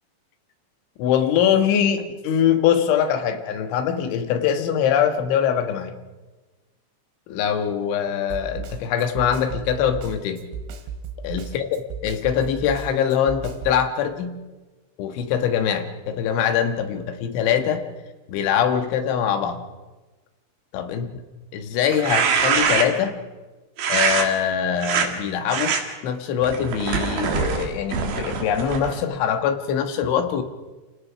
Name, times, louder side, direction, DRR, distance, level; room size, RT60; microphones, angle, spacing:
voice 1, 1.0-5.9 7.3-10.4 11.2-11.7 12.0-14.4 15.0-17.9 18.3-19.6 20.7-21.1 21.5-23.2 23.9-25.8 26.0-30.4, left 8 dB, 80° left, 7 dB, 3.9 m, -23 dB
Snare drum, 8.3-13.8, right 5 dB, 80° right, 4.1 m, -34 dB
sound 1, 21.9-23.1 23.8-24.3 24.8-25.1 25.5-25.8 26.4-29.0, right 6 dB, 60° right, 3.5 m, -23 dB
28.0 x 17.5 x 5.9 m, 1.2 s
omnidirectional pair, 5.4 m